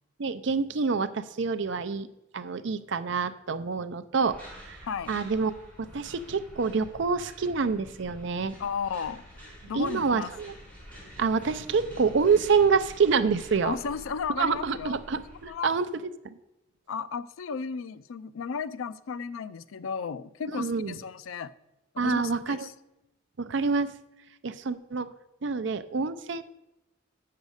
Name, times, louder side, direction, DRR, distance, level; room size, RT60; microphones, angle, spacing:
voice 1, 0.2-2.1 2.3-4.4 4.6-4.8 5.1-5.5 5.8-8.6 9.7-10.5 11.2-13.8 14.4-16.4 20.5-21.0 22.0-22.7 23.4-23.9 24.4-25.1 25.4-26.4, right 5 dB, 60° right, 12 dB, 0.5 m, -27 dB
sound 1, 4.2-15.5, equal, 5° left, 3.9 m, -48 dB
voice 2, 4.8-5.1 8.6-9.2 9.6-10.3 13.6-15.0 15.5-15.7 16.9-21.5 21.9-22.7, left 6 dB, 80° left, 15 dB, 0.4 m, -34 dB
7.2 x 6.6 x 6.4 m, 0.94 s
head